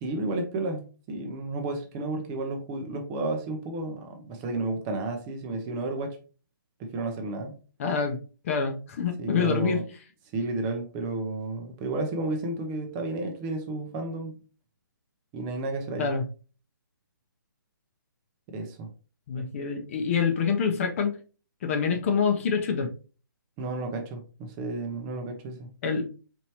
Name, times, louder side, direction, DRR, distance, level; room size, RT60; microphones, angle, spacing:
voice 1, 0.0-0.8 1.1-6.2 6.8-7.5 9.2-9.8 10.3-14.4 15.3-16.1 18.5-18.9 23.6-25.7, right 2 dB, 20° right, 0.6 m, -32 dB
voice 2, 7.8-8.2 8.4-9.8 16.0-16.2 19.3-21.2 21.6-22.9 25.8-26.1, left 6 dB, 40° left, 0.7 m, -26 dB
4.3 x 3.0 x 2.9 m
hypercardioid pair, 155°, 11 cm